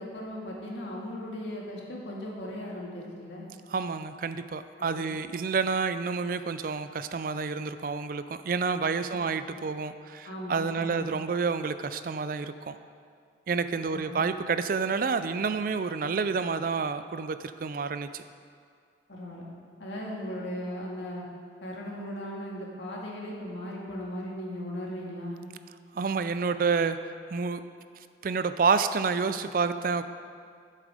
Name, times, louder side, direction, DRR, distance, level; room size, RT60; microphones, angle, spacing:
voice 1, 0.0-3.4 4.8-5.0 9.1-9.3 10.2-11.1 13.9-14.2 19.1-19.5 19.8-21.2 21.6-25.4, left 1 dB, 75° left, -3 dB, 2.0 m, -37 dB
voice 2, 3.7-12.8 13.5-18.2 25.9-27.0 27.3-27.6 28.2-30.0, right 5 dB, 50° right, 11 dB, 0.4 m, -29 dB
11.5 x 7.5 x 5.0 m, 2.2 s
head